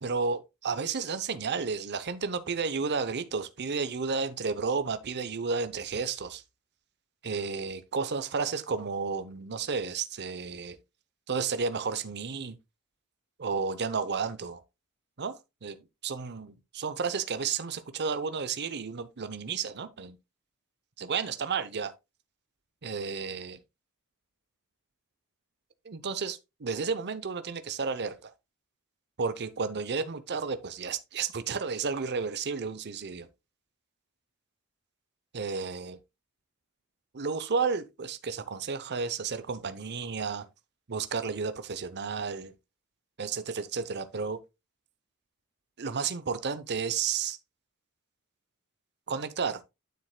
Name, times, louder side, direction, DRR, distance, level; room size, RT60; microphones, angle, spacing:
voice 1, 0.0-6.4 7.2-10.8 11.3-12.6 13.4-14.6 15.2-15.8 16.0-20.2 21.0-21.9 22.8-23.6 25.8-28.3 29.2-33.3 35.3-36.0 37.1-40.5 40.9-42.5 43.2-44.4 45.8-47.4 49.1-49.6, right 5 dB, 50° right, 0.8 m, -32 dB
9.5 x 7.6 x 2.3 m
head